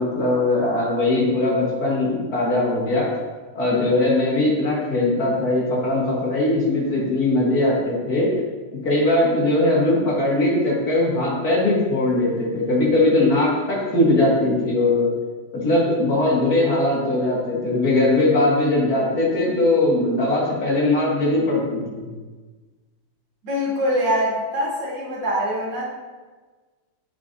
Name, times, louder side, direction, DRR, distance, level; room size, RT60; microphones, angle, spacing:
voice 1, 0.0-3.1 3.6-8.3 8.8-15.1 15.5-22.1, left 2 dB, 50° left, -5 dB, 1.9 m, -20 dB
voice 2, 23.4-25.9, equal, 60° right, -4 dB, 1.9 m, -23 dB
9.3 x 5.0 x 2.7 m, 1.3 s
omnidirectional pair, 2.2 m